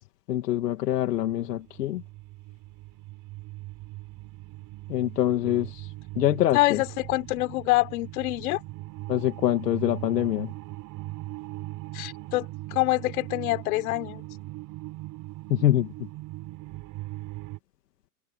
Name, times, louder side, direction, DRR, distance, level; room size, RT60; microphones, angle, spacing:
voice 1, 0.3-2.0 4.9-5.9 6.2-6.8 9.1-10.5 15.5-15.9, left 13 dB, 80° left, 2.2 m, -25 dB
sound 1, 0.9-17.6, right 19 dB, 45° right, 6.5 m, -40 dB
voice 2, 6.5-8.6 11.9-14.2, left 21 dB, 60° left, 3.7 m, -26 dB
hypercardioid pair, 120°, 48 cm